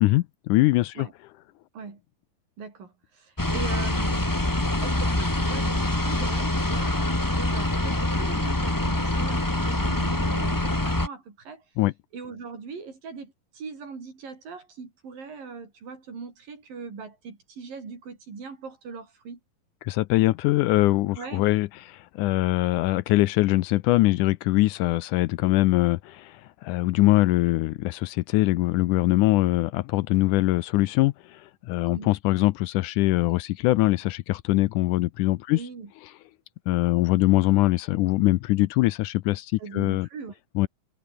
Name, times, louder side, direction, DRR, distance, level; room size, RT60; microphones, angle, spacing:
voice 1, 0.0-1.1 11.8-11.9 19.8-35.6 36.7-40.1 40.6-40.7, left 18 dB, 75° left, 2.0 m, -22 dB
voice 2, 2.6-4.5 4.8-11.6 12.1-19.4 21.2-21.5 31.9-32.1 35.5-35.9 39.6-40.4, right 5 dB, 80° right, 7.2 m, -40 dB
sound 1, 3.4-11.1, left 1 dB, 10° left, 0.9 m, -25 dB
omnidirectional pair, 3.9 m